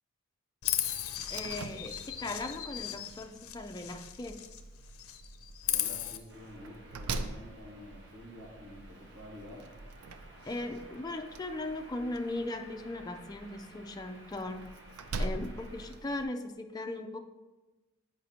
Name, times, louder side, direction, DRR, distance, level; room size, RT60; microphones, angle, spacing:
Chirp tweet, 0.6-4.6 4.9-6.2, left 12 dB, 75° left, 0.5 m, -36 dB
Slam, 1.2-16.2, right 2 dB, 90° right, 0.4 m, -44 dB
voice 1, 1.3-4.4 10.5-14.7 15.2-17.2, left 2 dB, 20° left, 5 dB, 0.3 m, -38 dB
voice 2, 5.7-9.7, left 1 dB, 75° right, -5 dB, 2.2 m, -49 dB
sound 1, 6.3-15.9, right 1 dB, 55° right, 1.0 m, -55 dB
8.1 x 4.9 x 2.8 m, 1.1 s
head